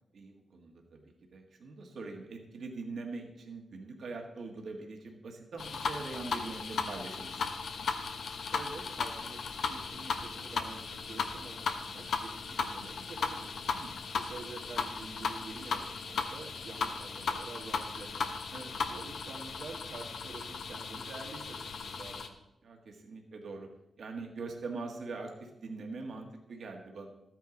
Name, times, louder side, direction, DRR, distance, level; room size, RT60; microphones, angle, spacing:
voice 1, 0.1-1.0 1.3-7.5 13.7-14.0 18.5-18.8 22.6-23.7 24.0-27.1, right 3 dB, 70° right, 2 dB, 1.7 m, -43 dB
sound 1, 5.6-22.3, left 5 dB, 75° left, 1.0 m, -36 dB
voice 2, 8.5-13.6 14.1-18.4 18.8-22.4, right 4 dB, 90° right, -2 dB, 1.5 m, -48 dB
13.0 x 9.2 x 3.9 m, 0.89 s
cardioid pair, 90°, 0 cm